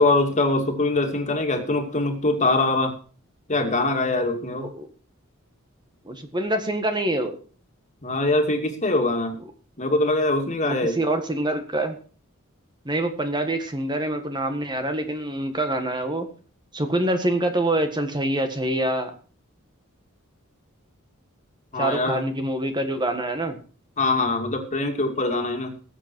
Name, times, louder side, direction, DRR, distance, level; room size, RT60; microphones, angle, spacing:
voice 1, 0.0-2.9 3.5-4.7 8.0-9.4 9.8-11.0 21.7-22.2 24.0-25.7, left 2 dB, 35° left, 4 dB, 2.5 m, -23 dB
voice 2, 4.5-4.9 6.0-7.4 10.6-11.9 12.8-16.3 16.7-19.1 21.8-23.6, right 1 dB, 20° right, 7 dB, 1.6 m, -25 dB
19.5 x 8.0 x 4.6 m, 0.39 s
head